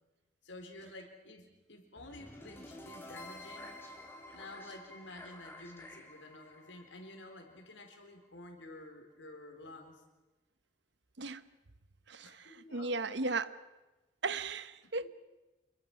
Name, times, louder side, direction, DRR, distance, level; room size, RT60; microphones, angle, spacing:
voice 1, 0.4-3.8 4.3-10.0 12.2-13.4 14.8-14.9, left 2 dB, 85° left, 4.2 m, -51 dB
sound 1, 2.0-8.0, left 1 dB, 10° left, 2.6 m, -51 dB
voice 2, 12.1-13.5 14.2-15.1, right 3 dB, 70° right, 1.0 m, -36 dB
27.5 x 22.5 x 6.1 m
head